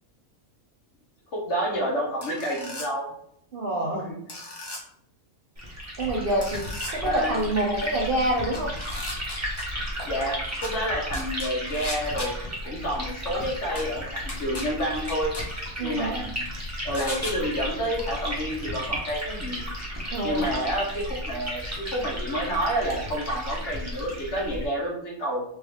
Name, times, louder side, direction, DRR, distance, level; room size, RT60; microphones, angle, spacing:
voice 1, 1.3-3.1 3.9-4.1 7.0-7.4 10.0-12.4 12.6-15.3 15.8-16.4 16.8-19.6 20.2-25.4, equal, 60° left, -2 dB, 1.4 m, -29 dB
sound 1, 2.2-2.9 4.3-4.8 6.4-6.9 8.5-9.6 10.6-10.7 11.1-12.3 13.8-13.9 14.3-14.6 15.1-15.4 16.9-17.3, left 1 dB, 25° left, 0.5 m, -35 dB
voice 2, 3.5-4.1 6.0-8.7 15.8-16.1 20.1-20.5, right 1 dB, 55° right, -2 dB, 0.6 m, -27 dB
Liquid, 5.6-24.7, equal, 15° right, 0.9 m, -34 dB
3.3 x 3.1 x 3.4 m, 0.69 s
omnidirectional pair, 1.5 m